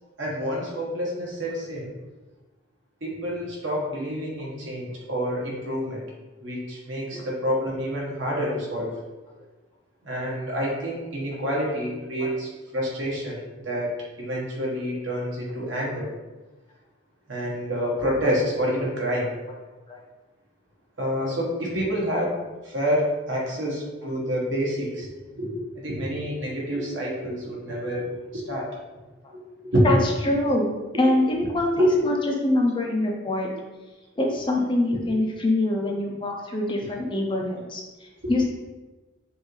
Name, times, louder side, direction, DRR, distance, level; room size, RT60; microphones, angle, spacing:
voice 1, 0.2-1.9 3.0-6.0 6.4-8.9 10.0-16.1 17.3-19.3 21.0-22.4 22.6-25.1 25.3-28.7 29.7-29.8 31.8-31.9 38.2-38.3, equal, 65° right, -3 dB, 1.2 m, -27 dB
voice 2, 29.8-33.5 34.2-38.5, left 1 dB, 25° left, 0 dB, 0.5 m, -25 dB
5.3 x 2.5 x 3.1 m, 1.2 s
head